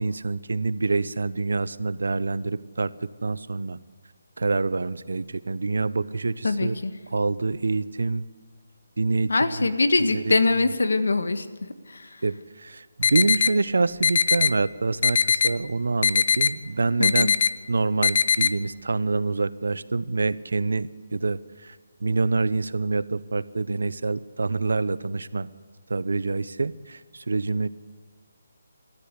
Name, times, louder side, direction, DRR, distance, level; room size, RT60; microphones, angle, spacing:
voice 1, 0.0-2.9 3.2-3.8 4.4-6.8 7.1-8.2 9.0-9.3 9.6-9.7 10.0-10.3 12.2-17.3 17.7-21.8 22.0-25.5 25.9-27.7, right 3 dB, 85° right, 16 dB, 0.9 m, -26 dB
voice 2, 6.4-6.9 9.3-11.5 11.9-12.2 17.0-17.3, left 3 dB, 85° left, 10 dB, 1.6 m, -23 dB
sound 1, 13.0-13.5 14.0-14.5 15.0-15.5 16.0-16.5 17.0-17.5 18.0-18.5, left 6 dB, 40° left, 0.6 m, -20 dB
29.0 x 14.0 x 8.3 m, 1.5 s
hypercardioid pair, 170°, 0 cm